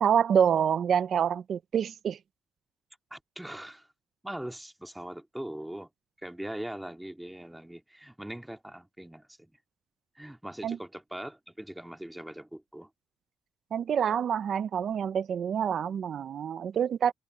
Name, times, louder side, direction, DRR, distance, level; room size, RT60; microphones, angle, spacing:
voice 1, 0.0-2.2 10.6-10.8 13.7-17.1, right 8 dB, 60° right, 0.6 m, -27 dB
voice 2, 3.1-3.9 4.2-5.9 6.2-9.5 10.2-12.9, right 1 dB, 5° right, 2.1 m, -41 dB
cardioid pair, 90°, 0 cm